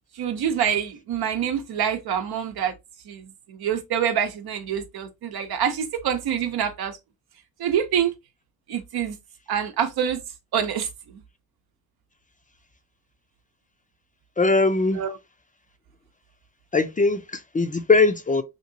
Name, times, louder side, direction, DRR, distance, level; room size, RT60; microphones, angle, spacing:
voice 1, 0.2-2.7 3.1-7.0 7.6-8.1 8.7-9.2 9.5-10.2 10.5-11.2 15.0-15.1, right 8 dB, 90° right, 0.7 m, -26 dB
voice 2, 14.4-15.0 16.7-18.4, left 3 dB, 25° left, 0.4 m, -20 dB
2.9 x 2.8 x 2.6 m
cardioid pair, 105°, 36 cm